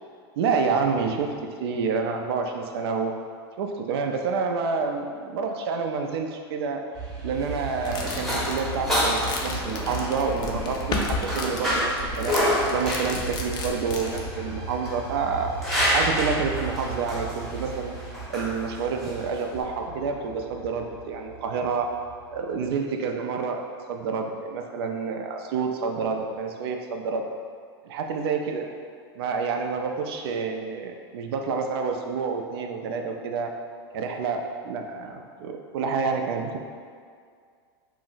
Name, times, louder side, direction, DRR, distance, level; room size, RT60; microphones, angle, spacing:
voice 1, 0.4-1.3 1.6-3.1 3.6-6.8 7.2-15.5 15.9-18.0 18.3-21.9 22.3-23.6 23.9-27.3 27.8-28.7 29.2-33.5 33.9-36.6, right 5 dB, 70° right, 3 dB, 0.4 m, -28 dB
sound 1, 6.9-22.7, right 4 dB, 25° right, 0.8 m, -37 dB
sound 2, 7.3-19.6, equal, ahead, 0.7 m, -29 dB
sound 3, 7.8-14.3, left 3 dB, 30° left, 0.4 m, -33 dB
2.5 x 2.0 x 3.9 m, 2.1 s
hypercardioid pair, 120°, 13 cm